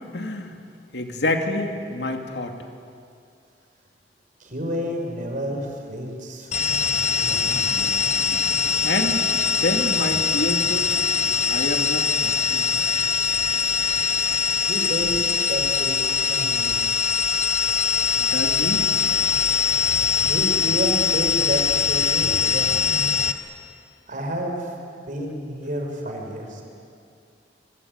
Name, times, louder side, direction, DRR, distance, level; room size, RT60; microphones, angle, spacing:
voice 1, 0.1-0.6 0.9-2.6 8.8-9.2 9.6-10.9 11.5-12.6 18.2-18.9, left 2 dB, 75° left, 4 dB, 2.6 m, -27 dB
voice 2, 4.4-6.5 7.2-7.9 14.7-16.9 20.3-23.0 24.1-24.6 25.1-26.6, equal, 50° right, 2 dB, 5.5 m, -30 dB
sound 1, 6.5-23.3, left 5 dB, 40° left, 1.3 m, -22 dB
25.5 x 24.0 x 9.6 m, 2.4 s
head